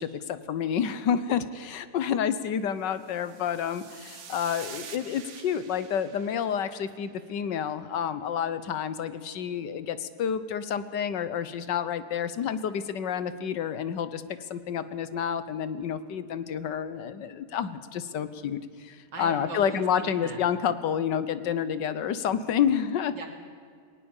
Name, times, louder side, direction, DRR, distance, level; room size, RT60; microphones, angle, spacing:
voice 1, 0.0-14.2 14.5-23.1, left 8 dB, 85° left, 13 dB, 1.6 m, -29 dB
sound 1, 2.9-7.4, right 6 dB, 45° right, 1.3 m, -47 dB
voice 2, 19.1-20.4 23.1-23.3, right 3 dB, 85° right, 2 dB, 3.5 m, -39 dB
19.0 x 18.5 x 7.2 m, 2.2 s
omnidirectional pair, 1.9 m